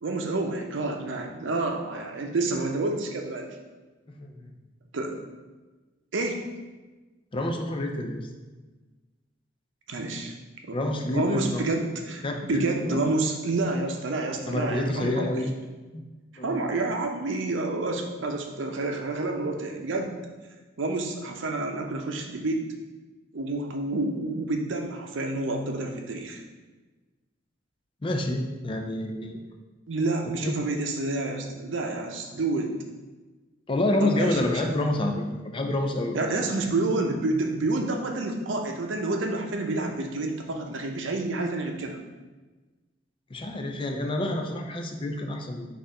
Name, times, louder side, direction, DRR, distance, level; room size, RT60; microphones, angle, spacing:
voice 1, 0.0-3.5 4.9-5.1 6.1-6.4 9.9-10.3 10.6-10.8 11.1-15.5 16.4-20.2 20.8-22.6 23.3-26.4 29.1-29.2 29.9-32.7 34.0-34.8 36.1-42.0, right 2 dB, 90° right, 3 dB, 0.6 m, -29 dB
voice 2, 4.1-4.5 7.3-8.3 10.7-11.6 12.2-13.0 14.5-15.5 15.9-16.0 16.4-16.7 28.0-29.4 30.4-30.6 33.7-36.4 43.3-45.7, left 1 dB, 30° left, 3 dB, 0.4 m, -28 dB
4.3 x 2.5 x 4.9 m, 1.2 s
head